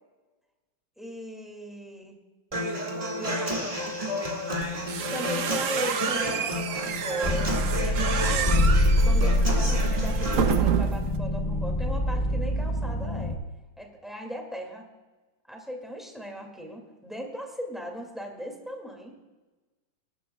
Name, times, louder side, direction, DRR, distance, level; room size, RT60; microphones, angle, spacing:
voice 1, 1.0-2.2 3.2-4.0 5.1-13.4 13.8-14.9 15.5-19.2, equal, ahead, 1 dB, 2.1 m, -38 dB
Human voice / Acoustic guitar, 2.5-10.5, equal, 20° right, 1.7 m, -31 dB
sound 1, 4.6-11.2, right 8 dB, 60° right, 0.9 m, -30 dB
sound 2, 7.2-13.4, left 1 dB, 30° left, 0.6 m, -25 dB
22.0 x 11.5 x 2.3 m, 1.2 s
omnidirectional pair, 1.9 m